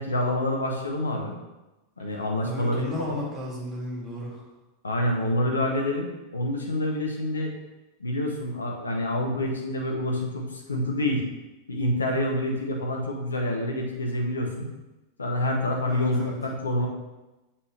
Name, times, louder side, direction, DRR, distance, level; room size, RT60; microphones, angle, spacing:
voice 1, 0.0-1.3 2.0-3.2 4.8-7.5 8.0-11.2 11.7-14.7 15.2-16.9, left 1 dB, 75° left, 1 dB, 1.0 m, -27 dB
voice 2, 2.1-4.4 15.9-16.4, left 1 dB, 15° right, -5 dB, 2.5 m, -34 dB
6.8 x 5.7 x 3.3 m, 1.0 s
figure-of-eight pair, 90°, 0 cm